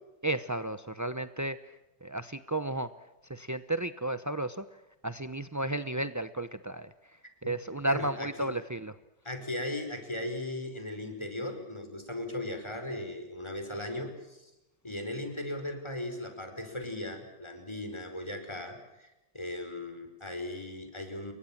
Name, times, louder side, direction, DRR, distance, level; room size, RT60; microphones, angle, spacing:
voice 1, 0.2-2.9 3.2-8.9, right 1 dB, 25° right, 12 dB, 0.3 m, -34 dB
voice 2, 7.8-8.5 9.2-14.5 14.8-21.3, left 1 dB, 15° left, 6 dB, 5.0 m, -37 dB
29.0 x 23.5 x 7.4 m, 0.98 s
omnidirectional pair, 1.9 m